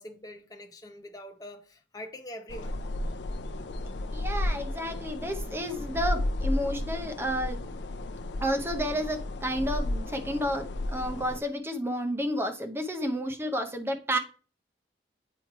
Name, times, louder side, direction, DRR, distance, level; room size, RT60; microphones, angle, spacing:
voice 1, 0.0-2.8, left 1 dB, 20° left, 0.8 m, -44 dB
sound 1, 2.5-11.4, left 1 dB, 85° left, 0.5 m, -33 dB
voice 2, 4.1-7.6 8.4-14.2, equal, 15° right, 0.7 m, -31 dB
8.9 x 3.2 x 4.6 m
head